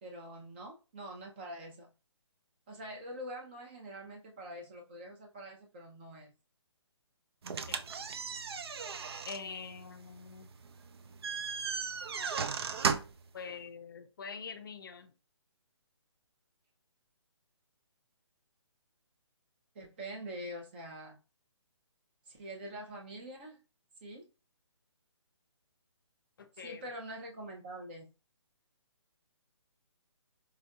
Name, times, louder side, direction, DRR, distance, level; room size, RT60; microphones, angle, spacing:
voice 1, 0.0-1.9 2.7-6.3 19.7-21.2 22.3-23.6 24.0-24.3 26.5-28.1, right 1 dB, 20° right, 0.6 m, -45 dB
sound 1, 7.4-13.3, right 5 dB, 55° right, 0.4 m, -36 dB
voice 2, 9.3-10.5 13.3-15.1 26.4-26.8, left 5 dB, 45° left, 0.5 m, -44 dB
4.4 x 2.5 x 2.3 m
hypercardioid pair, 165°, 16 cm